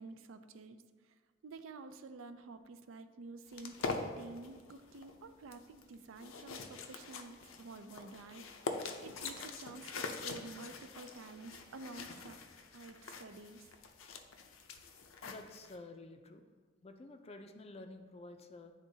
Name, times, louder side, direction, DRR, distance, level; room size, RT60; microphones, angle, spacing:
voice 1, 0.0-8.4 8.7-12.4 12.7-13.7, right 3 dB, 80° right, 9 dB, 0.4 m, -50 dB
sound 1, 3.5-15.8, left 4 dB, 80° left, 0.5 m, -44 dB
voice 2, 15.2-16.4 16.8-18.7, left 2 dB, 30° left, 6 dB, 0.4 m, -51 dB
9.8 x 3.6 x 2.7 m, 1.4 s
head